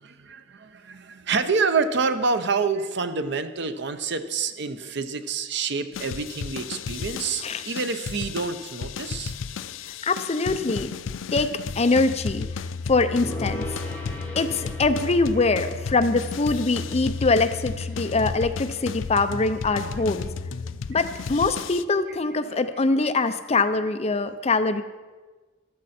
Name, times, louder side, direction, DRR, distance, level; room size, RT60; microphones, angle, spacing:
voice 1, 0.0-9.3 18.0-18.1 22.4-22.5, right 4 dB, 60° right, 10 dB, 0.8 m, -27 dB
sound 1, 5.9-21.8, left 5 dB, 90° left, 0.5 m, -33 dB
voice 2, 10.0-10.9 11.3-13.8 14.4-20.3 20.9-24.8, left 3 dB, 35° left, 9 dB, 0.6 m, -23 dB
Gong, 13.2-20.7, left 1 dB, 10° left, 2.4 m, -42 dB
14.0 x 12.5 x 4.3 m, 1.3 s
head